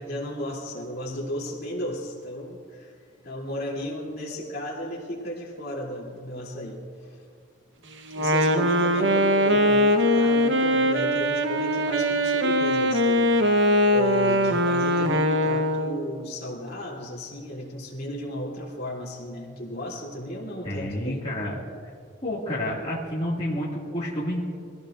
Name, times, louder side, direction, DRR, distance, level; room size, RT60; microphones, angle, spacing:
voice 1, 0.0-2.9 3.2-6.8 8.1-21.2, equal, 50° left, -3 dB, 3.1 m, -34 dB
Wind instrument woodwind instrument, 8.1-16.1, equal, 65° right, 1.0 m, -21 dB
voice 2, 20.6-21.6 22.2-24.4, left 1 dB, 30° left, -8 dB, 2.2 m, -29 dB
24.5 x 17.0 x 2.6 m, 2.1 s
head